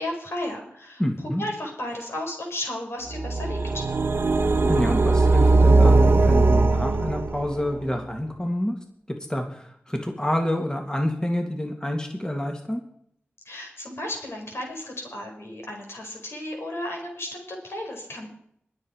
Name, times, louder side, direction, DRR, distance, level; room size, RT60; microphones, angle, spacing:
voice 1, 0.0-1.0 1.4-3.9 13.4-18.3, left 1 dB, 70° left, 1 dB, 4.8 m, -34 dB
voice 2, 1.0-1.4 4.6-8.7 9.1-12.8, equal, 15° left, 3 dB, 2.4 m, -27 dB
sound 1, 3.1-7.8, right 3 dB, 60° right, 1.2 m, -19 dB
22.0 x 7.5 x 4.8 m, 0.67 s
cardioid pair, 40°, 4 cm